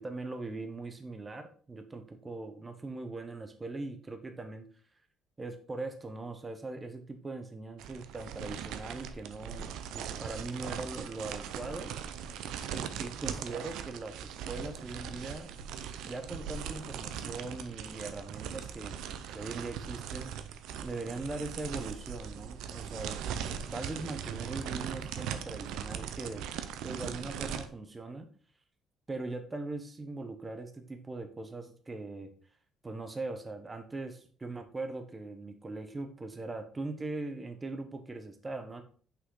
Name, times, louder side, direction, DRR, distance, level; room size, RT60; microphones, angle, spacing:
voice 1, 0.0-4.7 5.4-11.9 12.7-15.5 16.0-18.9 19.3-20.3 20.8-23.2 23.7-26.5 26.8-28.3 29.1-32.3 32.8-38.8, right 2 dB, 15° right, 7 dB, 0.8 m, -40 dB
sound 1, 7.8-27.7, right 8 dB, 85° right, 0.6 m, -40 dB
6.2 x 5.6 x 3.8 m, 0.43 s
cardioid pair, 165°, 0 cm